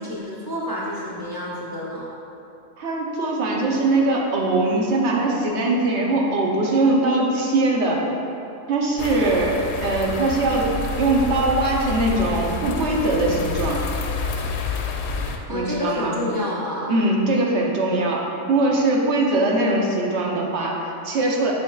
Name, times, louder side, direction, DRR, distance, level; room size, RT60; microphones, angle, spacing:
voice 1, 0.0-2.1 15.5-16.9, left 1 dB, 25° left, -7 dB, 0.6 m, -28 dB
voice 2, 2.8-8.0 8.7-10.7 11.0-13.8 15.5-16.1 16.9-21.5, right 2 dB, 65° right, -1 dB, 1.0 m, -21 dB
sound 1, 9.0-15.4, left 4 dB, 70° left, 0.8 m, -28 dB
7.7 x 5.5 x 2.3 m, 2.7 s
omnidirectional pair, 1.3 m